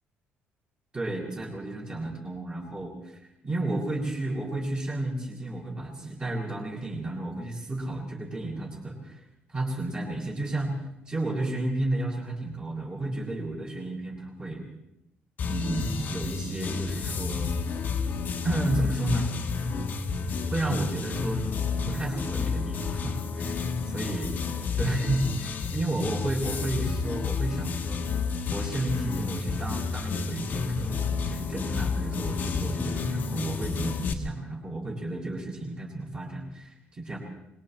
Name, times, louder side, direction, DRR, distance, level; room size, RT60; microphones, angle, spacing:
voice 1, 0.9-3.2 3.4-9.2 9.5-10.7 11.1-14.6 15.4-17.5 18.4-19.4 20.5-21.5 21.9-23.7 23.9-24.3 24.8-28.0 28.5-37.2, right 2 dB, 20° right, -2 dB, 6.8 m, -32 dB
sound 1, 15.4-34.1, left 5 dB, 45° left, 1.8 m, -30 dB
25.5 x 23.0 x 4.5 m, 0.90 s
cardioid pair, 150°, 4 cm